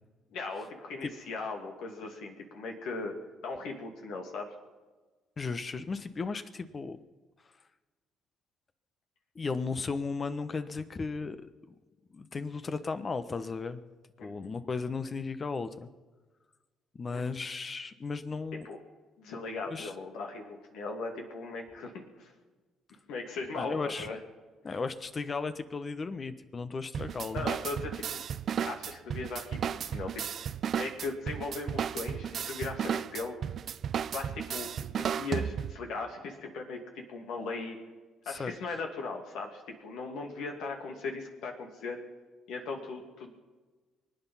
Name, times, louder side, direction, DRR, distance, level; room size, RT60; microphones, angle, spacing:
voice 1, 0.3-3.2 3.4-4.5 14.2-14.5 17.1-17.4 18.6-18.8 19.2-22.3 23.1-24.2 24.7-24.8 27.3-28.2 28.6-33.4 34.1-37.8 38.3-42.0 42.5-43.4, left 3 dB, 70° left, 2 dB, 2.5 m, -38 dB
voice 2, 5.4-7.0 9.3-11.7 12.1-13.8 14.2-15.9 16.9-18.7 19.7-19.9 23.5-24.1 24.6-27.5 38.3-38.5, left 4 dB, 40° left, 11 dB, 1.1 m, -35 dB
sound 1, 26.9-35.9, right 8 dB, 55° right, 0.5 m, -34 dB
23.5 x 9.3 x 5.7 m, 1.3 s
hypercardioid pair, 55°, 0 cm